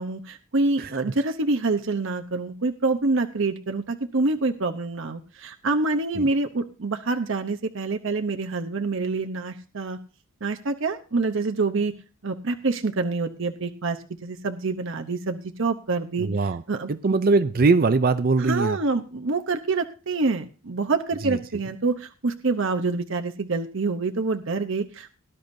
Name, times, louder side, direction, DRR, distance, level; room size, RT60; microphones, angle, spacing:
voice 1, 0.0-10.0 10.4-11.9 12.2-16.3 16.7-17.2 18.4-25.1, right 3 dB, 60° right, 6 dB, 0.8 m, -26 dB
voice 2, 16.2-16.6 16.9-18.8 21.2-21.4, right 3 dB, 45° right, 13 dB, 0.5 m, -21 dB
18.5 x 10.5 x 2.7 m, 0.34 s
head